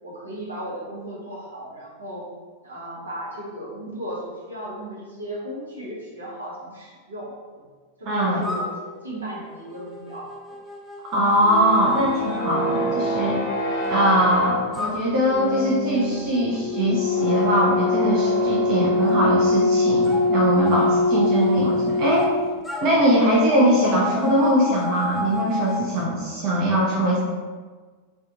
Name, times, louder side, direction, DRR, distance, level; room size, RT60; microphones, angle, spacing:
voice 1, 0.0-2.3 2.6-7.3 8.0-8.8 9.0-10.3, right 1 dB, 75° right, -5 dB, 0.9 m, -35 dB
voice 2, 8.1-8.4 11.1-13.4 13.9-22.3 22.8-27.2, right 1 dB, 40° right, -4 dB, 0.6 m, -21 dB
sound 1, 8.4-13.9 14.7-19.2 20.0-22.3 22.6-25.9, left 3 dB, 5° left, 0.4 m, -35 dB
sound 2, 11.3-22.5, left 2 dB, 50° left, 0.6 m, -23 dB
3.4 x 2.3 x 2.8 m, 1.4 s
figure-of-eight pair, 90°, 0 cm